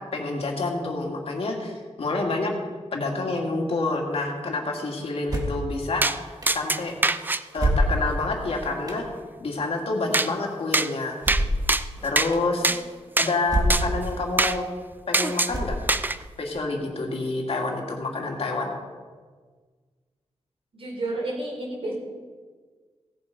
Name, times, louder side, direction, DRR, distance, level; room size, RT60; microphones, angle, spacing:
voice 1, 0.0-2.5 2.9-6.9 7.5-9.1 9.4-11.2 12.0-12.8 13.2-14.6 15.1-15.9 16.4-18.7, left 3 dB, 60° left, 0 dB, 2.2 m, -28 dB
sound 1, 5.3-5.7 6.4-6.5 7.6-8.3 8.9-9.0 11.2-11.7 12.3-12.4 13.5-13.9 14.4-14.5 15.5-16.1, right 1 dB, 35° right, 1.6 m, -25 dB
sound 2, 6.0-6.2 6.5-7.4 10.1-10.3 10.7-10.9 11.3-11.4 11.7-12.3 12.6-12.8 13.2-13.3 13.7-13.8 14.4-14.6 15.1-15.5 15.9-16.2, right 2 dB, 15° right, 0.4 m, -23 dB
voice 2, 20.7-21.9, right 2 dB, 55° right, -3 dB, 4.6 m, -31 dB
16.5 x 7.9 x 5.2 m, 1.5 s
wide cardioid pair, 150°, 11 cm